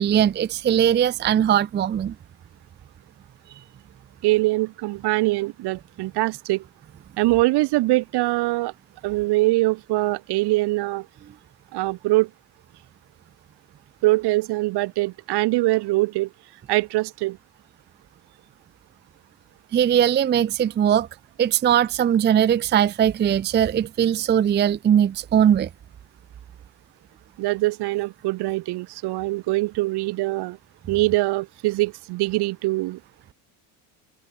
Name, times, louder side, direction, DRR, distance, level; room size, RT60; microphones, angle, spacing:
voice 1, 0.0-2.1 19.7-21.1 21.4-25.7, right 9 dB, 25° right, 0.5 m, -20 dB
voice 2, 4.2-6.6 7.2-8.7 9.0-11.1 11.7-12.3 14.0-16.3 16.7-17.4 27.4-30.6 30.9-33.0, right 20 dB, 60° right, 1.0 m, -23 dB
supercardioid pair, 95°, 45 cm